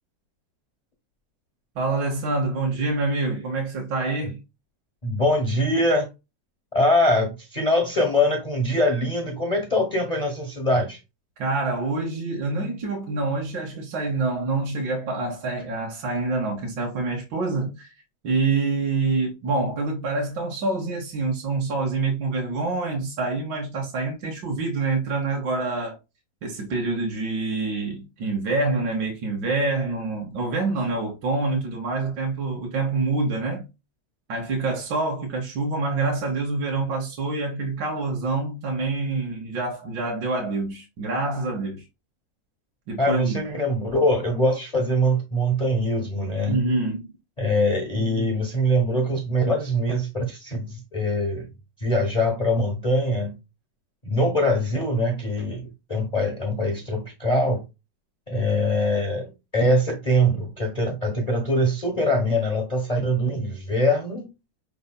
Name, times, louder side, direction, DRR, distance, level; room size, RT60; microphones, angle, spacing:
voice 1, 1.8-4.4 11.4-17.9 18.2-25.9 26.4-33.7 34.3-41.8 42.9-43.5 46.4-47.1, right 3 dB, 80° right, 1.8 m, -26 dB
voice 2, 5.0-6.1 6.7-11.0 43.0-46.6 47.4-51.5 51.8-53.3 54.0-57.6 58.3-64.3, equal, 30° left, 0.9 m, -23 dB
5.3 x 4.0 x 2.2 m
omnidirectional pair, 1.9 m